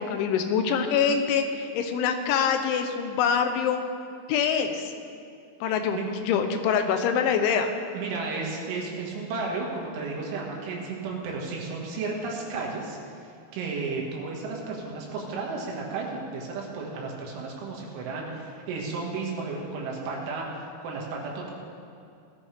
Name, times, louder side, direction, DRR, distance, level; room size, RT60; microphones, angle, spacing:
voice 1, 0.0-3.8 4.3-4.9 5.6-7.7, left 7 dB, 85° left, 6 dB, 3.3 m, -25 dB
voice 2, 7.9-13.0 13.5-20.5 20.8-21.5, right 4 dB, 85° right, -2 dB, 4.3 m, -33 dB
18.0 x 12.5 x 3.5 m, 2.5 s
omnidirectional pair, 5.3 m